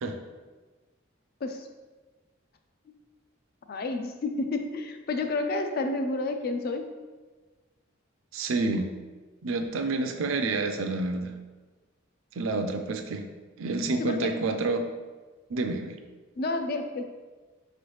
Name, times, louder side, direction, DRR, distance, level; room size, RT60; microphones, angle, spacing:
voice 1, 3.7-6.9 14.0-14.3 16.4-17.1, left 2 dB, 50° left, 6 dB, 0.4 m, -30 dB
voice 2, 8.3-8.9 9.4-11.3 12.4-13.3 13.6-14.9 15.5-16.0, right 3 dB, 80° right, 6 dB, 0.4 m, -28 dB
4.8 x 3.0 x 3.1 m, 1.3 s
head